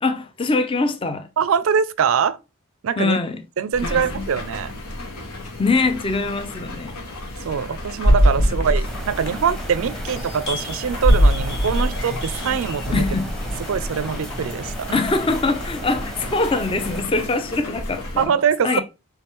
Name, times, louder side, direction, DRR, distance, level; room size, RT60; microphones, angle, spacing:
voice 1, 0.0-1.3 3.0-3.4 3.8-4.2 5.6-6.9 12.9-13.3 14.9-18.3 18.6-18.8, left 3 dB, 25° left, 0.4 m, -23 dB
voice 2, 1.4-2.4 2.8-3.2 3.6-4.7 7.4-13.0 13.7-14.9 18.2-18.8, right 7 dB, 65° right, 0.4 m, -23 dB
sound 1, 3.7-18.3, left 2 dB, 85° left, 1.1 m, -35 dB
sound 2, 6.1-6.2 6.9-7.0 8.0-9.7 10.2-13.3 14.1-14.2, equal, 50° left, 1.3 m, -20 dB
sound 3, 8.8-17.0, right 1 dB, ahead, 0.8 m, -34 dB
4.5 x 3.4 x 3.0 m
head